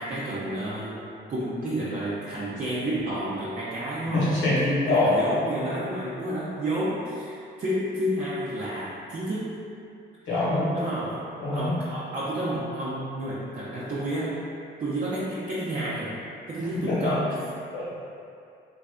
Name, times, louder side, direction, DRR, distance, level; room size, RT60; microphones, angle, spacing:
voice 1, 0.0-4.4 4.9-9.5 10.7-11.2 11.5-14.4 14.8-16.2 16.5-17.3, right 1 dB, 40° right, -8 dB, 0.6 m, -30 dB
voice 2, 4.1-5.2 10.3-10.7 11.4-11.8 16.7-17.1 17.7-17.8, left 2 dB, 70° left, -9 dB, 1.3 m, -24 dB
3.3 x 2.5 x 3.4 m, 2.5 s
cardioid pair, 90°, 20 cm